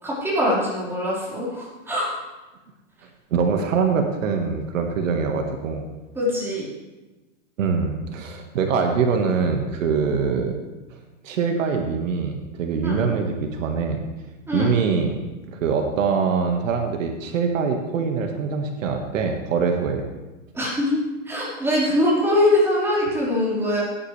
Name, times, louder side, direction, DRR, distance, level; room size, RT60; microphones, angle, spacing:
voice 1, 0.0-2.1 6.2-6.7 12.8-13.0 14.5-14.7 20.5-21.0 21.3-23.8, left 1 dB, 5° right, -7 dB, 4.3 m, -22 dB
voice 2, 3.3-5.8 7.6-10.6 11.2-14.0 14.5-15.1 15.5-20.0, right 5 dB, 75° right, 4 dB, 1.7 m, -23 dB
17.0 x 10.0 x 3.3 m, 1.1 s
hypercardioid pair, 145°, 38 cm